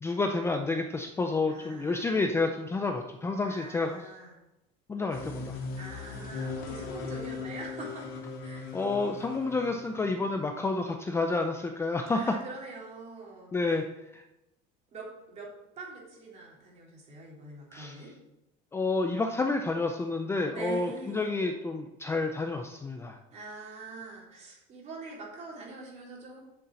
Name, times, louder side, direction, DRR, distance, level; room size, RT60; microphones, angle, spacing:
voice 1, 0.0-4.0 4.9-5.6 8.7-12.2 13.5-13.8 14.1-14.2 17.7-18.0 18.7-23.2, left 3 dB, 10° left, 4 dB, 0.5 m, -29 dB
voice 2, 1.5-2.3 3.4-4.4 5.8-8.1 8.4-8.8 12.1-13.6 14.9-15.5 15.8-18.1 20.5-21.3 23.3-26.4, right 3 dB, 35° right, -2 dB, 3.5 m, -44 dB
sound 1, 5.1-10.5, left 4 dB, 80° left, 2.7 m, -39 dB
7.9 x 6.9 x 7.6 m, 0.94 s
cardioid pair, 160°, 20 cm